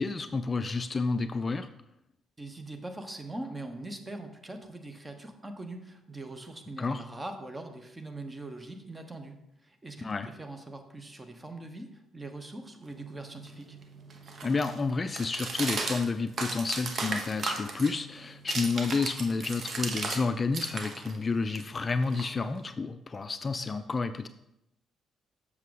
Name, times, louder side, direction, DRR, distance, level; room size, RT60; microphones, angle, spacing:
voice 1, 0.0-1.7 6.8-7.0 10.0-10.3 14.4-24.3, left 4 dB, 35° left, 10 dB, 0.4 m, -30 dB
voice 2, 2.4-9.4 9.6-13.8, right 2 dB, 20° right, 6 dB, 1.2 m, -42 dB
sound 1, 12.9-20.2 20.5-22.7, right 3 dB, 50° right, 1.0 m, -36 dB
7.2 x 6.1 x 3.9 m, 0.85 s
hypercardioid pair, 45°, 0 cm